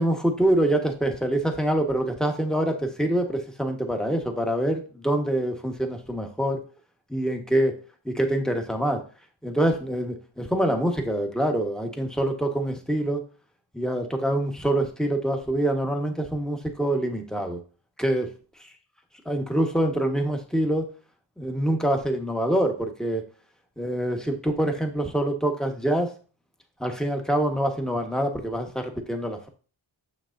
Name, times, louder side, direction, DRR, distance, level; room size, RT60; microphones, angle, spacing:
voice 1, 0.0-6.6 7.1-7.7 8.1-9.1 9.4-13.2 13.7-17.6 18.0-18.3 19.2-20.9 21.4-23.2 23.8-26.1 26.8-29.5, right 1 dB, ahead, 3 dB, 1.3 m, -25 dB
6.5 x 6.3 x 2.6 m, 0.37 s
cardioid pair, 50°, 48 cm